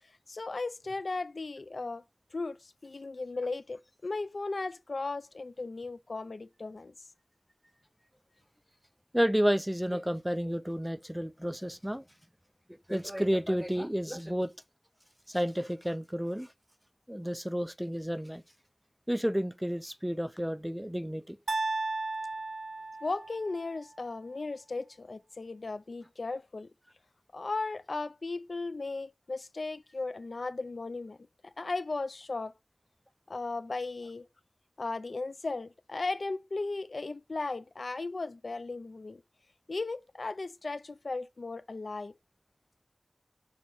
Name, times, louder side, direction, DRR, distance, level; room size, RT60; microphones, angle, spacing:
voice 1, 0.3-2.0 2.3-6.9 23.0-26.7 27.3-31.2 31.4-32.5 33.3-34.3 34.8-39.2 39.7-42.1, left 3 dB, 90° left, 0.4 m, -36 dB
voice 2, 9.1-12.0 12.7-14.5 15.3-16.5 17.1-18.4 19.1-21.4, equal, 5° right, 0.5 m, -31 dB
sound 1, 21.5-23.6, right 3 dB, 90° right, 0.4 m, -34 dB
6.4 x 2.9 x 5.3 m
wide cardioid pair, 45°, 0 cm